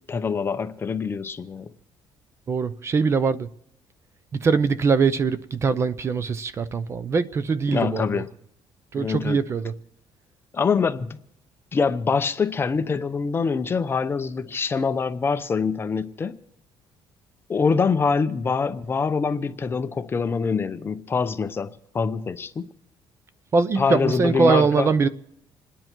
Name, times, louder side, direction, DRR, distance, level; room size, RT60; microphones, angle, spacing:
voice 1, 0.1-1.7 7.7-8.3 9.0-9.4 10.5-11.2 11.7-16.4 17.5-22.7 23.8-24.9, left 5 dB, 25° left, 0.7 m, -24 dB
voice 2, 2.5-3.5 4.3-8.2 8.9-9.7 23.5-25.1, right 5 dB, 30° right, 0.6 m, -22 dB
27.5 x 10.0 x 4.6 m
cardioid pair, 150°, 9 cm